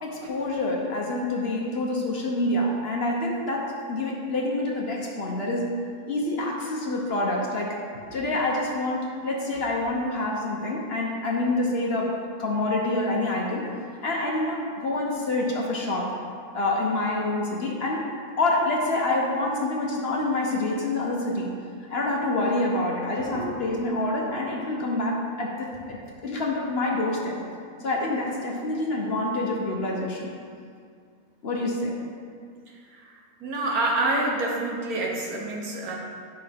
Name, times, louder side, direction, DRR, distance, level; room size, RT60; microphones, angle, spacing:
voice 1, 0.0-5.8 6.1-7.8 8.1-12.1 12.4-13.7 14.0-16.1 16.5-18.0 18.4-21.5 21.9-27.4 27.8-30.3 31.4-32.0, left 2 dB, 50° left, -2 dB, 1.1 m, -27 dB
voice 2, 33.4-35.9, right 2 dB, 80° right, -2 dB, 1.6 m, -27 dB
10.0 x 5.6 x 3.6 m, 2.2 s
omnidirectional pair, 1.5 m